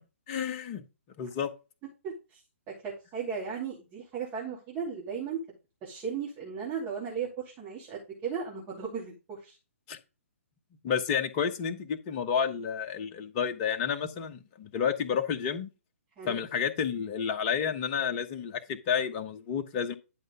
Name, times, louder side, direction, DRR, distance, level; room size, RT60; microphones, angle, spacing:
voice 1, 0.3-0.8 1.2-1.5 9.9-10.0 10.8-15.7 16.2-19.9, left 7 dB, 30° left, 1.2 m, -30 dB
voice 2, 2.0-2.4 2.7-5.4 5.8-9.6 16.2-16.4, right 6 dB, 25° right, 2.6 m, -36 dB
11.0 x 5.3 x 3.7 m
figure-of-eight pair, 130°, 8 cm